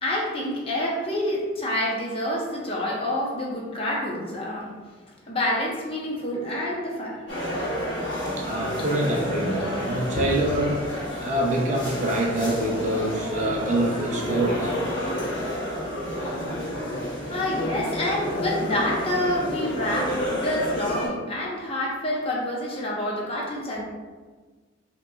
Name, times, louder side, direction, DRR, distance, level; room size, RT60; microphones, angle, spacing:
voice 1, 0.0-4.7 5.3-7.2 10.2-10.3 17.2-23.8, left 1 dB, 30° left, -3 dB, 0.7 m, -27 dB
sound 1, 7.3-21.1, left 1 dB, 75° left, 1.3 m, -30 dB
voice 2, 8.4-14.8, right 1 dB, 40° right, -1 dB, 0.5 m, -25 dB
5.2 x 2.9 x 2.3 m, 1.4 s
head